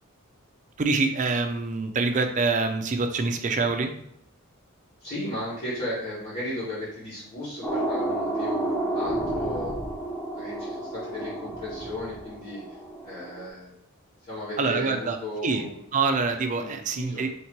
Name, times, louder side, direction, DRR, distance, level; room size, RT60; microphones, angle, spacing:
voice 1, 0.8-3.9 14.6-15.2 15.4-15.6 15.9-17.3, right 4 dB, 35° right, 6 dB, 0.5 m, -25 dB
voice 2, 5.0-12.6 13.0-13.7 14.2-15.8 16.6-17.3, left 1 dB, 45° left, -11 dB, 1.5 m, -35 dB
sound 1, 7.6-13.5, right 1 dB, 10° left, 0.6 m, -31 dB
3.3 x 2.8 x 4.5 m, 0.72 s
head